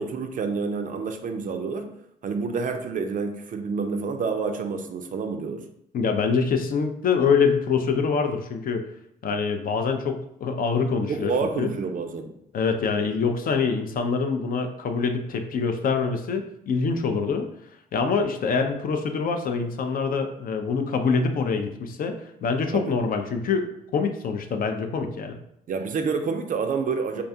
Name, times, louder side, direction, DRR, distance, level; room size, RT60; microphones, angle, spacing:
voice 1, 0.0-1.9 2.2-5.7 11.1-12.3 22.7-22.9 25.7-27.2, right 5 dB, 45° right, 6 dB, 0.4 m, -28 dB
voice 2, 5.9-8.8 9.2-11.3 11.6-11.7 12.5-17.5 17.9-22.1 22.4-25.4, left 5 dB, 50° left, 6 dB, 0.4 m, -25 dB
2.4 x 2.3 x 2.6 m, 0.75 s
hypercardioid pair, 50°, 20 cm